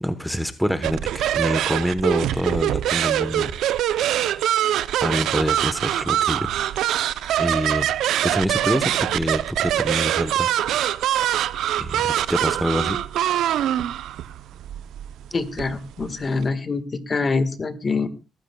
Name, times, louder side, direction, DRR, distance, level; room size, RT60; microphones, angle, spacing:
voice 1, 0.0-3.6 3.8-4.1 5.0-6.9 7.4-7.9 8.2-10.5 11.7-13.0, equal, ahead, 10 dB, 1.0 m, -26 dB
sound 1, 0.8-16.4, right 12 dB, 80° right, 0.5 m, -24 dB
voice 2, 15.3-18.1, left 4 dB, 35° left, 10 dB, 1.5 m, -25 dB
20.5 x 14.0 x 2.3 m, 0.31 s
cardioid pair, 90°, 0 cm